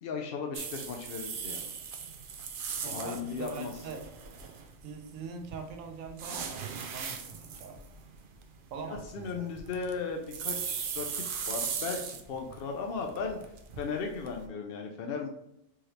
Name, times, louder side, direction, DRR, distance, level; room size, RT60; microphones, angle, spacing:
voice 1, 0.0-1.7 2.9-3.7 8.9-13.4 13.8-15.3, left 5 dB, 60° left, 2 dB, 0.7 m, -36 dB
sound 1, 0.5-4.9 5.4-12.6 12.9-14.4, right 6 dB, 60° right, 0.6 m, -38 dB
voice 2, 2.8-4.1 4.8-7.8 8.7-9.5, right 5 dB, 85° right, 4 dB, 1.1 m, -42 dB
4.7 x 3.2 x 2.9 m, 0.81 s
omnidirectional pair, 1.3 m